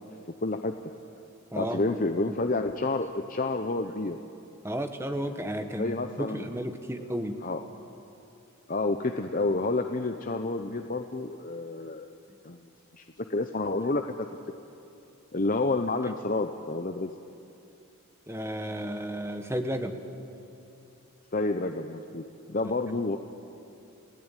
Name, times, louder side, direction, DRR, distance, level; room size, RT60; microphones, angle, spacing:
voice 1, 0.4-0.7 1.5-4.2 5.6-6.5 7.4-7.6 8.7-12.1 12.4-12.6 12.9-13.0 13.3-14.3 15.3-17.1 21.3-23.2, left 2 dB, 40° left, 6 dB, 0.8 m, -29 dB
voice 2, 1.5-2.0 2.3-2.4 4.6-7.4 18.3-19.9, equal, 10° right, 7 dB, 1.2 m, -33 dB
29.5 x 17.5 x 9.1 m, 2.8 s
head